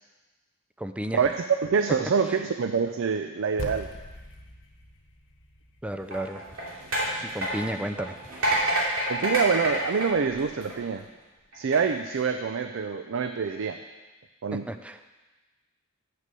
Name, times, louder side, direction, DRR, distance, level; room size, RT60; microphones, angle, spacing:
voice 1, 0.8-1.2 5.8-6.4 7.2-8.2 14.5-15.0, right 1 dB, 5° right, 8 dB, 0.4 m, -33 dB
voice 2, 1.6-3.9 9.1-11.0 11.5-13.8 14.4-14.7, right 5 dB, 65° right, 7 dB, 0.4 m, -26 dB
sound 1, 3.6-8.1, left 1 dB, 65° left, 1.1 m, -43 dB
sound 2, 6.0-11.0 11.5-11.8, right 1 dB, 80° right, 2.6 m, -28 dB
6.8 x 6.4 x 7.5 m, 1.2 s
head